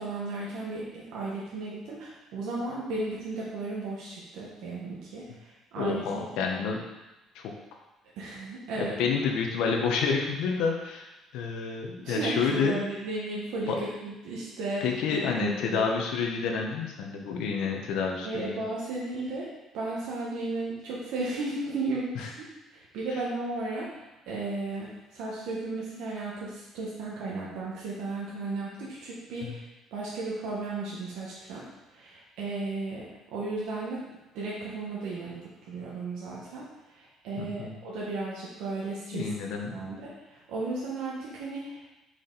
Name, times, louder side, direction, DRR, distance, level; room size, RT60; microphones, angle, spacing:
voice 1, 0.0-6.2 8.2-9.2 12.0-13.7 14.0-15.9 18.2-19.5 19.7-22.3 22.7-23.9 24.3-29.6 29.9-34.0 34.3-39.3 39.7-41.8, right 2 dB, 80° right, -6 dB, 1.4 m, -35 dB
voice 2, 5.8-6.8 7.3-7.5 8.8-12.8 13.7-13.8 14.8-18.6 29.4-29.5 37.4-37.8 39.1-39.7, left 5 dB, 75° left, 1 dB, 1.0 m, -29 dB
5.8 x 4.9 x 4.0 m, 1.0 s
cardioid pair, 170°, 0 cm